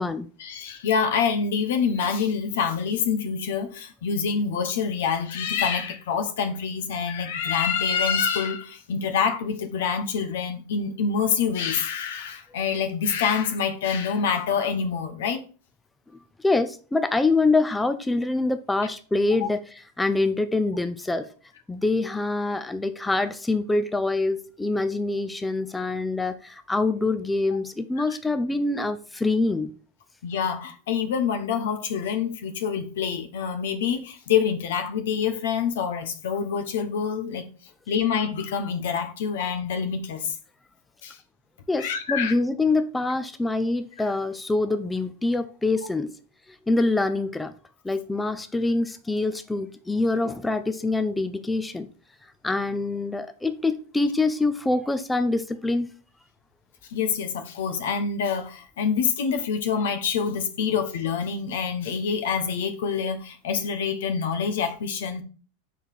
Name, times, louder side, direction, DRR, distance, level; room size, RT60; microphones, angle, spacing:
voice 1, 0.4-15.4 19.4-19.5 30.2-37.5 37.9-40.4 41.0-41.2 41.8-42.3 56.9-65.2, left 6 dB, 80° left, 0.9 m, -26 dB
voice 2, 16.4-21.3 21.7-29.7 41.7-46.1 46.5-47.5 47.8-51.9 52.4-55.9, left 2 dB, 10° left, 0.4 m, -25 dB
4.6 x 3.9 x 5.1 m
supercardioid pair, 130°, 0 cm